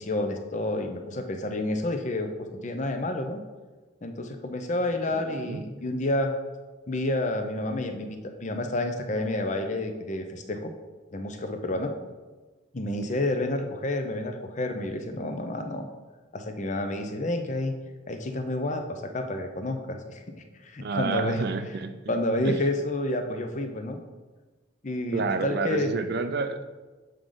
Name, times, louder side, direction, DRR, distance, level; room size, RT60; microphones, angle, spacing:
voice 1, 0.0-3.4 4.0-6.3 6.9-10.7 11.1-11.9 12.7-15.9 16.3-17.7 18.1-20.2 20.6-21.4 22.1-24.0 24.8-25.9, left 1 dB, 35° left, 6 dB, 0.6 m, -29 dB
voice 2, 5.1-5.6 20.8-22.2 22.4-22.6 25.1-26.6, right 4 dB, 55° right, 9 dB, 0.4 m, -30 dB
7.8 x 5.0 x 3.9 m, 1.3 s
head